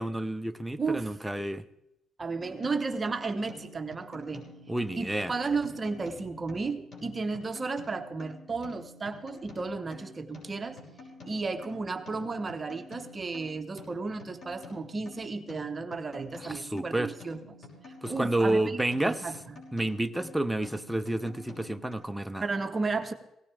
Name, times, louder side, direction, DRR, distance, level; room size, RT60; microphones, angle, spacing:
voice 1, 0.0-1.6 4.7-5.3 16.4-17.1 18.0-19.3 19.7-22.4, right 1 dB, 5° right, 0.8 m, -30 dB
voice 2, 0.8-1.1 2.2-4.4 5.0-10.8 11.2-17.4 17.9-19.4 22.4-23.1, right 4 dB, 30° right, 1.1 m, -33 dB
sound 1, 2.4-21.9, left 3 dB, 50° left, 5.9 m, -49 dB
18.0 x 16.0 x 3.5 m
cardioid pair, 90°, 0 cm